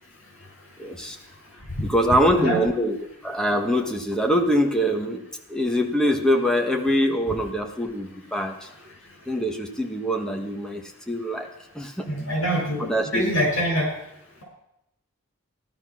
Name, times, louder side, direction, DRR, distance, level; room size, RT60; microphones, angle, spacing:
voice 1, 0.8-1.2 1.8-3.0 3.2-5.2 5.5-8.7 9.3-11.5 11.7-12.1 12.8-13.2, equal, 5° left, 2 dB, 1.3 m, -23 dB
voice 2, 12.1-13.9, equal, 65° left, -1 dB, 7.1 m, -24 dB
15.5 x 11.5 x 6.3 m, 0.85 s
head